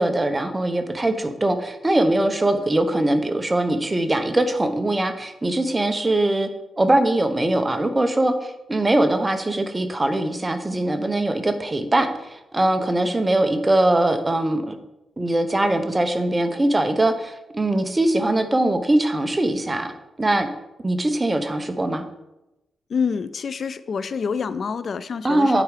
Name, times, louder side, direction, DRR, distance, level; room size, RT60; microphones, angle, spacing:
voice 1, 0.0-6.5 6.8-14.7 15.2-20.5 20.8-22.0 25.2-25.6, right 1 dB, 20° right, 8 dB, 0.9 m, -21 dB
voice 2, 22.9-25.6, left 6 dB, 60° left, 14 dB, 0.3 m, -27 dB
8.6 x 4.6 x 4.9 m, 0.94 s
cardioid pair, 80°, 0 cm